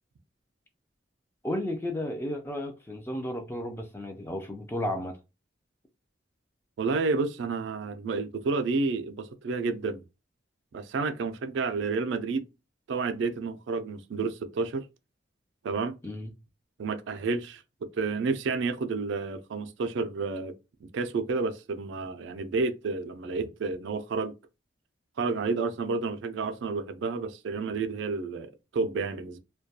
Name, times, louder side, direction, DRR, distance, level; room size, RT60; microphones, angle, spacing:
voice 1, 1.4-5.2 16.0-16.3, left 1 dB, 10° left, 0.3 m, -33 dB
voice 2, 6.8-10.0 10.7-12.4 12.9-14.8 15.6-16.0 16.8-20.5 20.8-24.3 25.2-29.4, right 4 dB, 70° right, 0.3 m, -30 dB
2.2 x 2.2 x 2.7 m
head